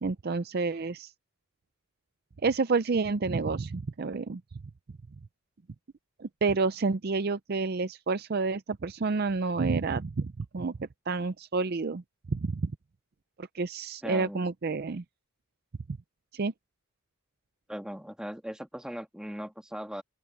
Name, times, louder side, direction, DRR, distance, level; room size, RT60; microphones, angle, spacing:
voice 1, 0.0-1.1 2.4-4.4 6.2-12.0 12.3-12.7 13.4-15.0 16.3-16.5, right 4 dB, 45° right, 0.5 m, -29 dB
voice 2, 14.0-14.4 17.7-20.0, equal, 5° right, 1.7 m, -39 dB
open air
head